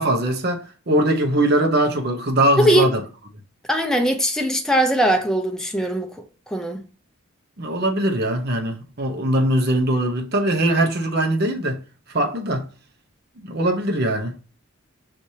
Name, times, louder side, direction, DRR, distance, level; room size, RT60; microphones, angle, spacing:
voice 1, 0.0-3.0 7.6-11.8 12.1-12.7 13.4-14.4, right 1 dB, 50° right, 0.8 m, -21 dB
voice 2, 2.6-2.9 3.7-6.1 6.5-6.8, right 1 dB, 5° left, 0.5 m, -20 dB
5.8 x 3.2 x 2.8 m
head